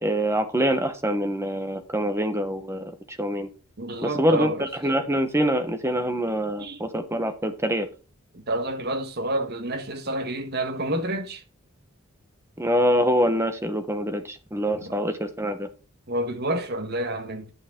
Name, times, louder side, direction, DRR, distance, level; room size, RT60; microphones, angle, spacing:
voice 1, 0.0-3.5 4.0-7.9 12.6-15.7, equal, 10° right, 1.0 m, -25 dB
voice 2, 3.8-4.7 6.6-6.8 8.3-11.4 14.8-14.9 16.1-17.5, right 1 dB, 50° right, 1.3 m, -29 dB
11.0 x 6.3 x 3.7 m
head